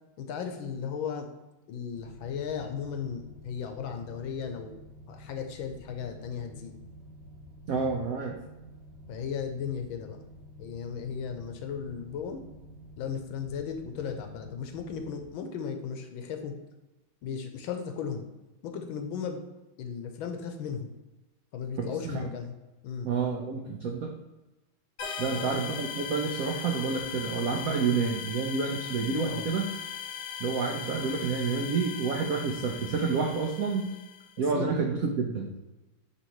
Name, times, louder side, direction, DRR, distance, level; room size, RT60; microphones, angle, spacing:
voice 1, 0.2-1.3 1.7-4.8 5.1-6.8 9.1-10.2 10.6-12.4 13.0-16.5 17.2-18.3 18.6-19.4 19.8-20.9 21.5-22.5 22.8-23.1 25.2-25.7 29.3-29.5 34.5-34.8, left 7 dB, 80° left, 5 dB, 1.4 m, -36 dB
sound 1, 1.8-15.2, equal, 70° right, 1.9 m, -49 dB
voice 2, 7.7-8.4 21.8-22.2 23.0-24.1 25.2-29.7 30.4-33.8 34.4-35.5, right 5 dB, 85° right, 2 dB, 0.7 m, -29 dB
sound 2, 25.0-34.4, left 8 dB, 55° left, 1.2 m, -39 dB
9.7 x 3.3 x 3.0 m, 1.1 s
omnidirectional pair, 2.3 m